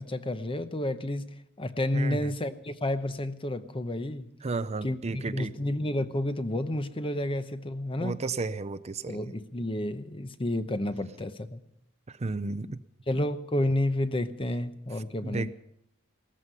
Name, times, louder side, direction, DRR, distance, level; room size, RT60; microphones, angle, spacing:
voice 1, 0.0-4.3 4.8-8.2 9.1-11.6 13.1-15.5, left 1 dB, 25° left, 0.9 m, -30 dB
voice 2, 1.9-2.3 4.4-5.5 8.0-9.2 12.2-12.8 15.2-15.5, right 3 dB, 30° right, 0.5 m, -32 dB
18.0 x 14.0 x 5.6 m
head